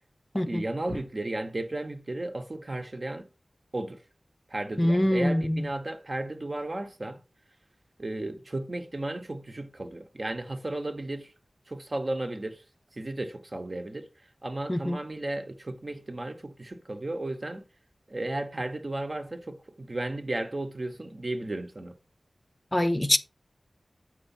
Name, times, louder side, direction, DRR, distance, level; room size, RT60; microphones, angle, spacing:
voice 1, 0.3-3.3 3.7-4.0 4.5-7.2 8.0-11.3 11.7-12.6 12.9-14.1 14.4-17.6 18.1-22.0, right 2 dB, 45° right, 1.0 m, -34 dB
voice 2, 4.8-5.7 14.7-15.0 22.7-23.2, left 1 dB, 25° left, 0.7 m, -24 dB
8.1 x 4.5 x 4.3 m
wide cardioid pair, 60°, 0 cm